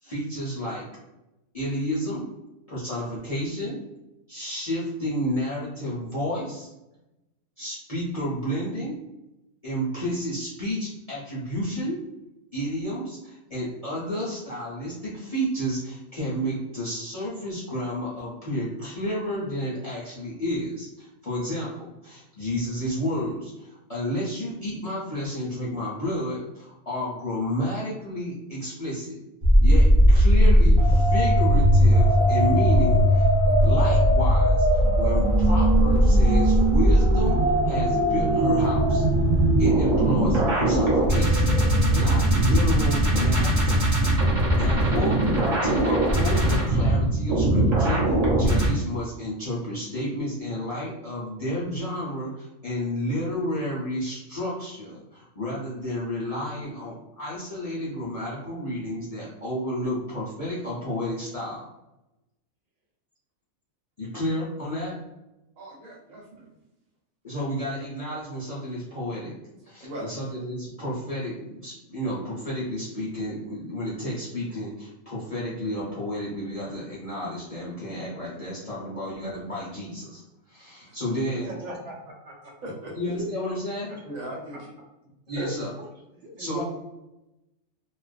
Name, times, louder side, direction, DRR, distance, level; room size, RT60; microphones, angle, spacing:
voice 1, 0.0-0.9 1.5-2.3 2.7-3.8 4.3-6.7 7.6-9.0 9.6-12.0 12.5-29.2 29.6-33.3 33.6-39.0 39.6-43.9 44.3-61.7 64.0-64.9 67.2-69.3 69.6-80.2 80.5-81.5 82.9-83.9 85.3-85.7 86.4-86.6, equal, 45° left, -9 dB, 0.4 m, -31 dB
sound 1, 29.4-48.7, right 1 dB, 45° right, 0.5 m, -19 dB
voice 2, 65.6-66.6 69.8-70.1 80.8-81.2 82.6-83.0 84.0-84.7, right 1 dB, 85° right, -2 dB, 1.2 m, -39 dB
voice 3, 81.4-82.5 83.2-83.3 83.9-84.0 84.5-84.6 85.4-85.8 86.2-86.6, right 1 dB, 65° right, 0 dB, 0.9 m, -36 dB
2.4 x 2.2 x 2.4 m, 0.95 s
omnidirectional pair, 1.4 m